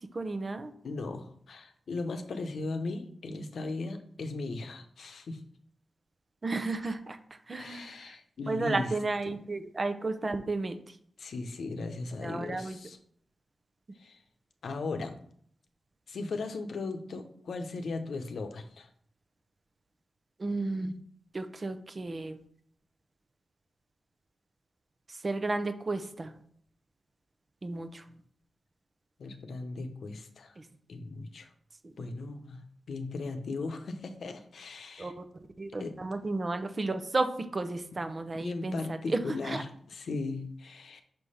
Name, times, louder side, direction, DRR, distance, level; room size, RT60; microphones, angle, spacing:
voice 1, 0.1-0.7 6.4-7.2 7.5-8.2 8.5-10.8 12.2-12.8 20.4-21.0 21.3-22.4 25.1-26.3 27.6-28.0 30.6-30.7 31.8-32.1 35.0-35.2 35.6-39.6, right 3 dB, 45° right, 8 dB, 0.8 m, -33 dB
voice 2, 0.8-5.4 7.5-8.9 9.3-9.4 11.2-13.0 14.0-14.2 14.6-15.2 16.1-18.9 29.2-30.6 30.9-31.5 32.0-35.1 35.8-36.0 38.3-41.0, left 3 dB, 80° left, 7 dB, 0.8 m, -37 dB
6.1 x 3.3 x 5.6 m, 0.63 s
cardioid pair, 50°, 0 cm